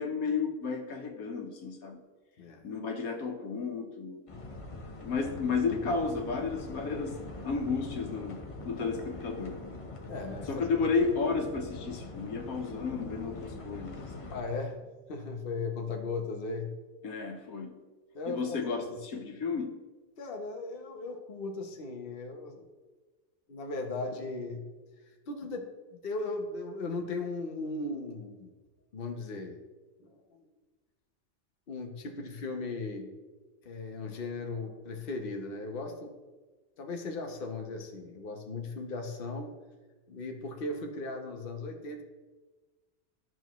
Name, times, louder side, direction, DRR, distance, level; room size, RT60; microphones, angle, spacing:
voice 1, 0.0-2.0 2.6-4.3 5.0-7.2 7.4-9.6 10.5-14.1 17.0-17.8 18.3-19.8, left 5 dB, 90° left, 3 dB, 1.5 m, -32 dB
voice 2, 2.4-2.8 10.1-10.7 14.3-14.8 15.1-16.8 18.1-18.8 20.2-22.7 23.5-24.7 25.3-28.5 28.9-29.6 30.0-30.4 31.7-33.1 33.6-36.1 36.8-39.5 40.1-42.0, left 3 dB, 45° left, 3 dB, 1.1 m, -37 dB
sound 1, 4.3-14.4, left 2 dB, 30° left, 0.8 m, -43 dB
13.5 x 6.1 x 3.1 m, 1.3 s
omnidirectional pair, 1.5 m